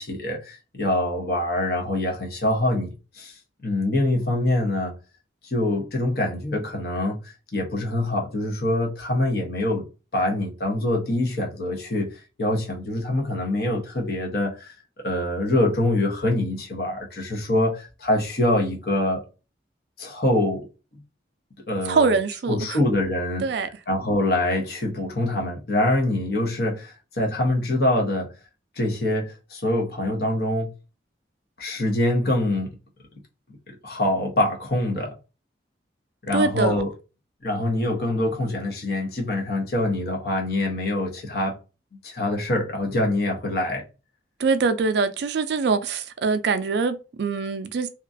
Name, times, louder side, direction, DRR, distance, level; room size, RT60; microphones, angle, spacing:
voice 1, 0.0-2.9 3.1-4.9 5.4-7.2 7.5-9.8 10.1-12.1 12.4-14.7 15.0-19.2 20.0-20.7 21.7-22.1 22.5-23.5 23.9-28.3 28.8-30.7 31.6-32.8 33.7-35.1 36.2-36.9 37.4-41.6 41.9-43.8, left 1 dB, 55° left, 0.9 m, -24 dB
voice 2, 21.8-22.8 23.4-23.7 36.3-36.8 44.4-47.9, right 4 dB, 65° right, 0.3 m, -23 dB
2.9 x 2.4 x 2.5 m
head